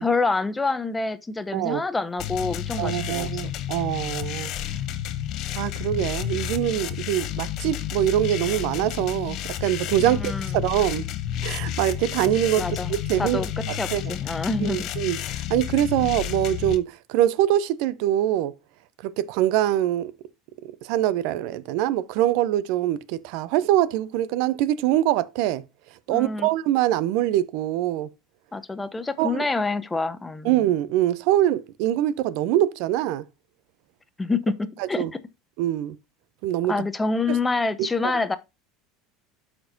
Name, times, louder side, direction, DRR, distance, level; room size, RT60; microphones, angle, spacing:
voice 1, 0.0-3.3 10.0-10.6 12.6-12.9 13.2-13.5 13.7-14.9 26.1-26.5 28.5-30.5 34.2-35.2 36.7-38.4, left 3 dB, 15° left, 0.7 m, -27 dB
sound 1, 2.2-16.8, left 11 dB, 55° left, 0.8 m, -31 dB
voice 2, 2.8-4.5 5.5-11.1 11.4-12.6 12.9-13.4 13.9-14.2 14.6-15.2 15.5-18.5 19.0-20.1 20.6-25.6 26.1-28.1 29.2-29.5 30.4-33.2 35.0-35.1 35.6-35.9 36.4-36.7 37.3-37.4 38.0-38.1, right 13 dB, 65° right, 0.5 m, -24 dB
12.5 x 4.4 x 2.6 m
hypercardioid pair, 85°, 0 cm